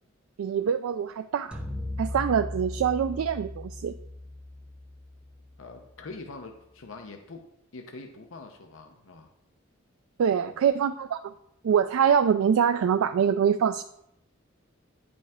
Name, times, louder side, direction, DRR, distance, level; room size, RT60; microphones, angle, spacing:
voice 1, 0.4-1.6 2.0-3.9 10.2-11.3 11.6-13.8, right 7 dB, 85° right, 10 dB, 0.3 m, -24 dB
sound 1, 1.5-5.8, left 1 dB, 5° right, 0.7 m, -38 dB
voice 2, 5.6-7.4 7.7-9.3, left 3 dB, 70° left, 4 dB, 0.7 m, -43 dB
9.4 x 5.2 x 3.6 m, 0.77 s
head